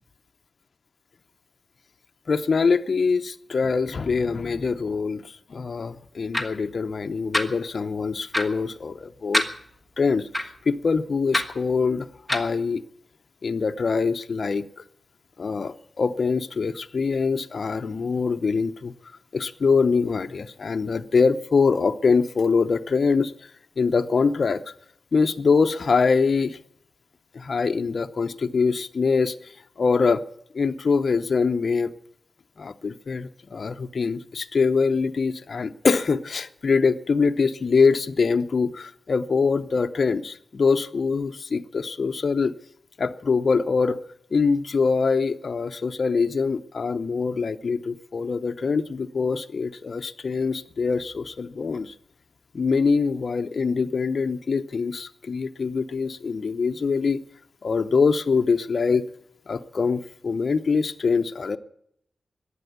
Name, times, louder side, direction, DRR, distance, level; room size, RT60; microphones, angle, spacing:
voice 1, 2.3-9.4 10.0-12.8 13.4-14.6 15.4-18.9 19.3-23.3 23.8-24.6 25.1-26.6 27.3-29.5 29.8-30.2 30.5-31.9 32.6-42.5 43.0-44.0 44.3-51.9 52.5-57.2 57.6-59.1 59.5-61.6, left 5 dB, 45° left, 8 dB, 0.7 m, -24 dB
sound 1, 6.3-6.4 7.3-7.4 8.3-8.5 9.3-9.5 10.3-10.4 11.3-11.5 12.3-12.5, left 1 dB, 5° right, 1.4 m, -23 dB
15.0 x 10.0 x 9.3 m, 0.71 s
wide cardioid pair, 175°, 0 cm